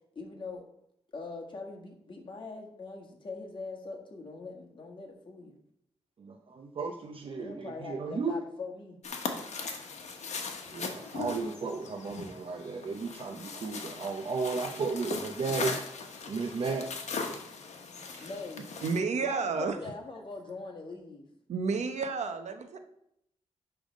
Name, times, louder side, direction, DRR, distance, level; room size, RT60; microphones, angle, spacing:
voice 1, 0.2-0.7 1.1-5.5 7.4-9.0 18.2-18.7 19.2-21.3, left 3 dB, 45° left, -1 dB, 1.7 m, -42 dB
voice 2, 6.2-8.4 10.7-15.8 16.3-16.9, right 4 dB, 50° right, 3 dB, 0.6 m, -34 dB
sound 1, 9.0-19.0, left 4 dB, 80° left, 1.1 m, -39 dB
voice 3, 18.8-19.8 21.5-22.8, right 4 dB, 80° right, 7 dB, 0.9 m, -31 dB
10.0 x 3.4 x 5.2 m, 0.76 s
wide cardioid pair, 105°, 12 cm